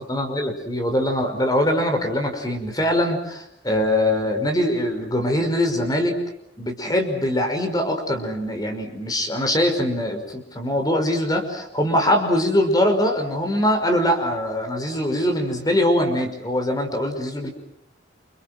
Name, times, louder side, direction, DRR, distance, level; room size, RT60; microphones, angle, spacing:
voice 1, 0.0-6.2 6.6-17.5, left 1 dB, 20° left, 5 dB, 5.5 m, -22 dB
29.5 x 29.0 x 6.3 m, 0.73 s
head